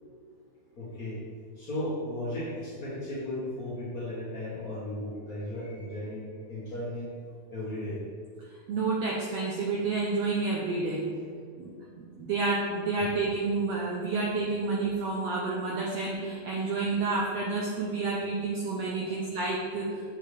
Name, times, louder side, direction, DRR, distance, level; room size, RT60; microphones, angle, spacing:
voice 1, 0.8-1.2 1.6-7.1 7.5-8.0 13.9-14.0 19.0-19.1, left 1 dB, 60° left, -9 dB, 0.9 m, -35 dB
voice 2, 8.7-11.0 11.6-11.7 12.0-20.0, right 3 dB, 80° right, -3 dB, 1.4 m, -29 dB
6.9 x 5.8 x 3.3 m, 2.2 s
omnidirectional pair, 3.7 m